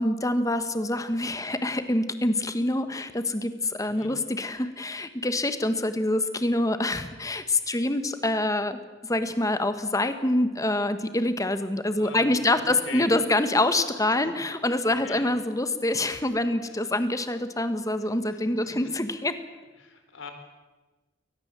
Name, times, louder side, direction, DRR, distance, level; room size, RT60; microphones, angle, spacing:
voice 1, 0.0-8.8 9.0-19.3, left 1 dB, 15° left, 10 dB, 1.4 m, -26 dB
voice 2, 12.0-13.1 14.1-14.2 15.0-15.2 16.7-16.8 18.3-18.9 19.8-20.3, left 4 dB, 85° left, 6 dB, 3.8 m, -42 dB
22.5 x 19.5 x 7.5 m, 1.2 s
head